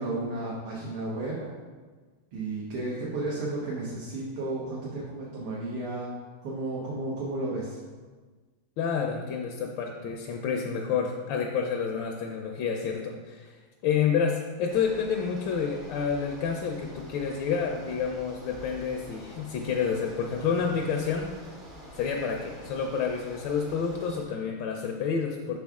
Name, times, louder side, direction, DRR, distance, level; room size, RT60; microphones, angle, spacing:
voice 1, 0.0-1.5 2.3-6.1 6.4-7.8, right 2 dB, 80° right, -6 dB, 1.9 m, -33 dB
voice 2, 8.8-13.5 13.8-21.3 22.0-25.6, left 6 dB, 75° left, 2 dB, 1.1 m, -29 dB
Bicycle, 14.7-24.3, equal, 40° right, 0.7 m, -47 dB
5.9 x 5.2 x 3.5 m, 1.4 s
omnidirectional pair, 2.4 m